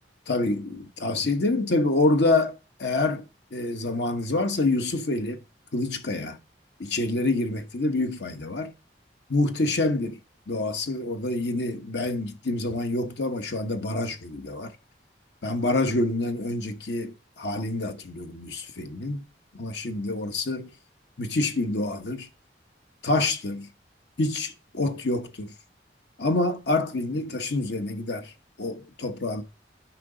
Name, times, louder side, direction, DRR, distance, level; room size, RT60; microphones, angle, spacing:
voice 1, 0.3-2.5 2.8-3.2 3.5-5.4 5.7-6.4 6.8-8.7 9.3-10.2 10.5-14.7 15.4-19.2 19.5-20.7 21.2-22.3 23.0-23.7 24.2-25.5 26.2-28.3 28.6-29.4, left 2 dB, 65° left, 1.0 m, -27 dB
9.3 x 5.9 x 3.9 m
head